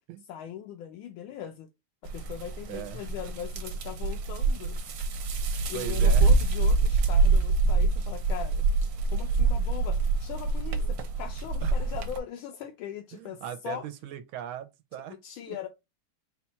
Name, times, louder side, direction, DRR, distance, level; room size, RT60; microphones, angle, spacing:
voice 1, 0.3-1.7 2.0-4.8 5.7-8.7 9.1-13.9 15.2-15.7, left 10 dB, 80° left, 1.4 m, -40 dB
sound 1, 2.1-12.2, right 3 dB, 70° right, 1.4 m, -25 dB
voice 2, 2.7-3.0 5.7-6.3 10.8-10.9 11.6-11.8 13.1-15.2 15.5-15.6, right 11 dB, 90° right, 1.4 m, -39 dB
4.3 x 2.3 x 4.2 m
omnidirectional pair, 2.2 m